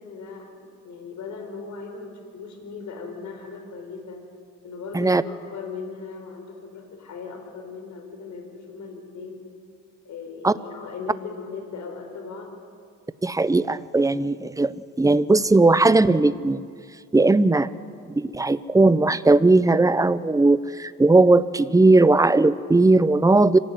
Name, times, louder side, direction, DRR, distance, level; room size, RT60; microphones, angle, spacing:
voice 1, 0.0-4.2 4.6-9.4 10.0-12.5, left 5 dB, 70° left, 4 dB, 5.0 m, -38 dB
voice 2, 13.2-16.6 17.1-17.7 18.1-23.6, right 2 dB, 10° right, 15 dB, 0.8 m, -18 dB
25.5 x 16.5 x 9.7 m, 2.2 s
cardioid pair, 90°, 30 cm